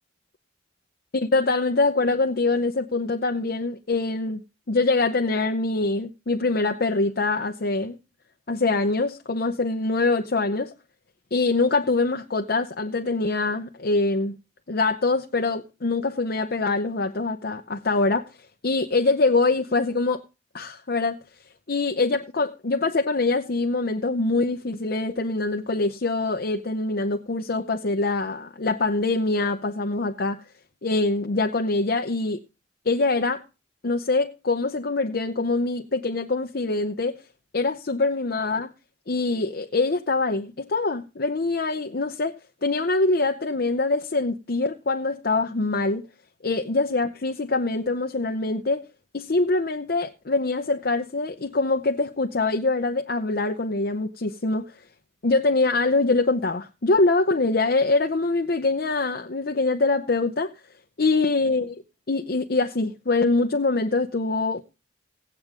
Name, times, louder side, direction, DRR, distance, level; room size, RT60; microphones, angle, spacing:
voice 1, 1.1-4.4 4.7-8.0 8.5-10.7 11.3-14.4 14.7-18.3 18.6-20.2 20.5-21.2 21.7-30.4 30.8-32.4 32.9-33.4 33.8-37.2 37.5-38.7 39.1-46.0 46.4-48.8 49.1-54.7 55.2-60.5 61.0-61.8 62.1-64.6, left 3 dB, 55° left, 0.7 m, -24 dB
16.5 x 9.0 x 3.7 m
head